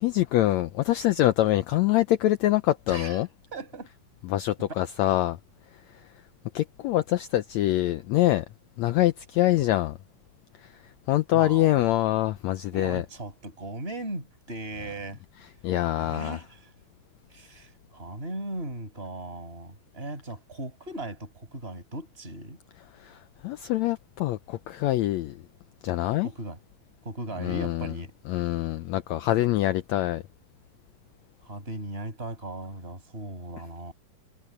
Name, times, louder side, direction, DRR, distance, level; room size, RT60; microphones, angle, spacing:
voice 1, 0.0-3.3 4.3-5.4 6.5-8.4 8.8-10.0 11.1-13.0 15.6-16.4 23.0-23.1 23.4-25.3 25.8-26.3 27.4-27.9 28.3-30.2, left 15 dB, 80° left, 1.6 m, -24 dB
voice 2, 2.9-3.2 3.5-3.9 4.6-4.7 11.3-11.8 12.7-15.2 16.0-16.7 17.3-22.6 26.2-26.6 27.0-28.1 31.4-33.9, right 1 dB, 15° right, 6.5 m, -37 dB
omnidirectional pair, 3.9 m